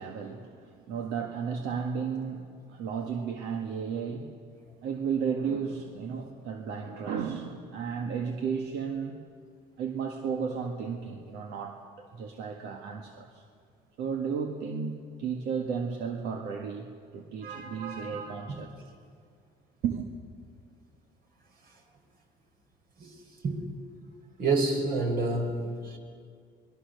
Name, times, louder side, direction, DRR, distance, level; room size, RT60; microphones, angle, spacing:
voice 1, 0.0-4.3 4.8-9.2 9.8-13.4 14.0-16.9 17.1-18.7 19.8-20.1, right 6 dB, 85° right, 3 dB, 1.8 m, -33 dB
voice 2, 17.4-18.1 23.0-23.1 23.4-23.6 24.4-26.0, right 3 dB, 60° right, 3 dB, 4.9 m, -29 dB
27.0 x 21.5 x 6.8 m, 2.1 s
cardioid pair, 110°, 17 cm